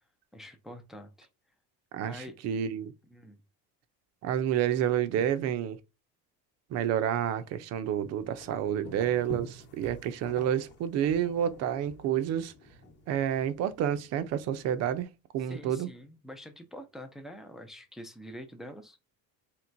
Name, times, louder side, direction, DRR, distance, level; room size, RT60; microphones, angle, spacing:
voice 1, 0.3-1.3 2.0-2.4 3.1-3.4 15.4-19.0, equal, ahead, 0.3 m, -46 dB
voice 2, 1.9-2.9 4.2-5.8 6.7-12.5 13.1-15.1 15.3-15.9, right 10 dB, 45° right, 0.5 m, -29 dB
sound 1, 7.8-15.0, left 1 dB, 30° left, 1.0 m, -49 dB
4.5 x 3.1 x 2.5 m
cardioid pair, 160°, 35 cm